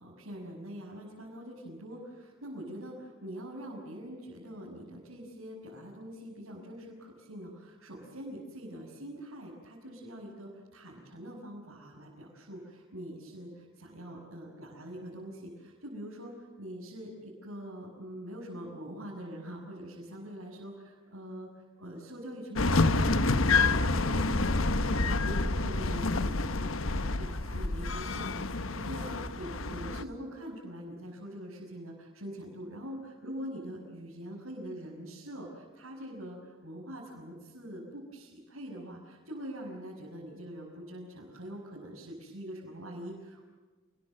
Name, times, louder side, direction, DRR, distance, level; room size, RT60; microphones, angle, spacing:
voice 1, 0.0-13.5 13.8-21.5 21.8-43.5, equal, 90° right, -5 dB, 6.6 m, -44 dB
sound 1, 22.6-30.0, left 3 dB, 75° left, 1.2 m, -28 dB
28.5 x 21.5 x 7.7 m, 1.4 s
head